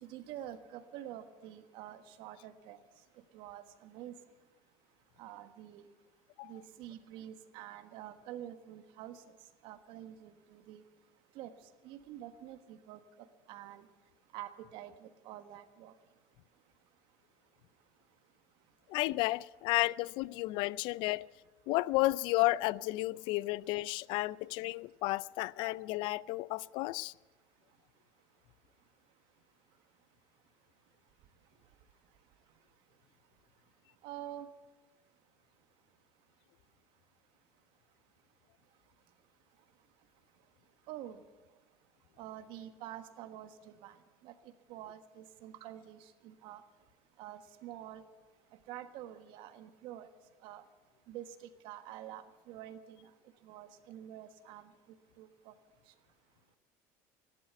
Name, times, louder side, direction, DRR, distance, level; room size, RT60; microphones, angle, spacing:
voice 1, 0.0-2.8 3.3-4.1 5.2-5.8 6.4-9.2 9.6-10.8 11.3-11.5 11.8-13.0 13.5-13.8 14.3-15.9 34.0-34.5 40.9-41.2 42.2-43.9 44.2-44.3 44.7-46.0 46.2-46.6 47.2-48.0 48.7-50.1 50.4-50.6 51.1-51.3 51.6-53.1 53.4-54.7 55.2-55.5, right 12 dB, 70° right, 1.4 m, -47 dB
voice 2, 18.9-21.3 21.7-27.1, left 19 dB, 65° left, 0.4 m, -32 dB
15.0 x 12.0 x 8.0 m
supercardioid pair, 100°, 9 cm